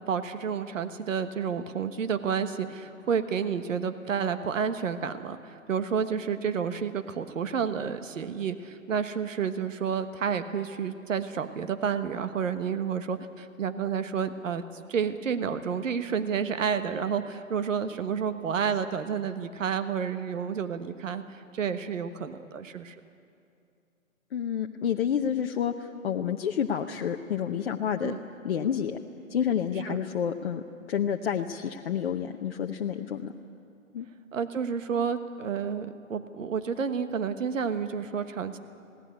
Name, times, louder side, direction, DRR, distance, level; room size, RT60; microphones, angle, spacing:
voice 1, 0.0-14.6 14.9-22.9 28.0-28.2 29.9-30.0 34.3-38.6, right 7 dB, 65° right, 10 dB, 1.4 m, -30 dB
voice 2, 24.3-28.1 28.4-29.0 29.3-30.6 30.9-33.3 33.9-34.1, left 8 dB, 45° left, 2 dB, 0.9 m, -29 dB
20.0 x 17.5 x 9.4 m, 2.5 s
hypercardioid pair, 145°, 41 cm